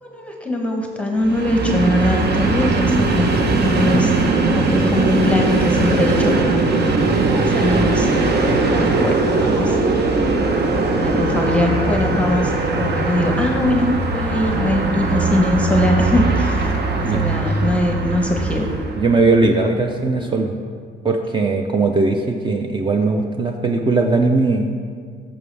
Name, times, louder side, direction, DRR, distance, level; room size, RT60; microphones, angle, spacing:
voice 1, 0.0-6.5 7.3-9.8 10.0-10.3 11.0-18.7, left 1 dB, 5° left, 1 dB, 0.9 m, -22 dB
Train, 1.2-19.3, right 3 dB, 55° right, 0.9 m, -19 dB
voice 2, 19.0-20.5 21.0-24.8, right 3 dB, 25° right, 3 dB, 0.5 m, -19 dB
10.5 x 6.9 x 3.3 m, 2.1 s
cardioid pair, 90°, 20 cm